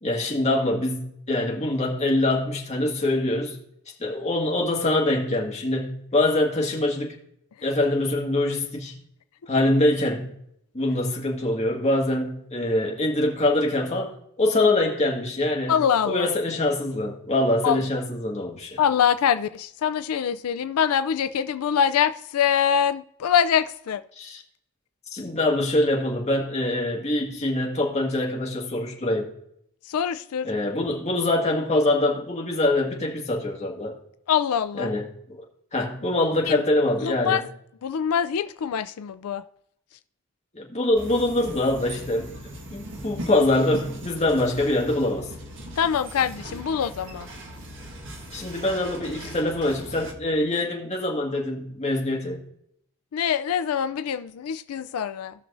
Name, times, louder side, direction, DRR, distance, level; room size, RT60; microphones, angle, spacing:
voice 1, 0.0-3.6 4.0-7.1 7.6-9.0 9.5-10.3 10.7-15.8 16.1-18.8 24.2-24.4 25.1-29.3 30.4-33.9 34.8-35.1 35.7-37.4 40.5-42.4 42.7-45.3 48.3-52.4, left 1 dB, 30° left, 1.7 m, -24 dB
voice 2, 15.7-16.3 17.6-17.8 18.8-24.0 29.8-30.5 34.3-34.9 36.5-36.6 37.0-37.5 37.8-39.4 45.8-47.3 53.1-55.3, left 8 dB, 85° left, 0.4 m, -24 dB
sound 1, 40.9-50.1, right 1 dB, 60° right, 1.4 m, -39 dB
17.5 x 6.1 x 2.5 m
head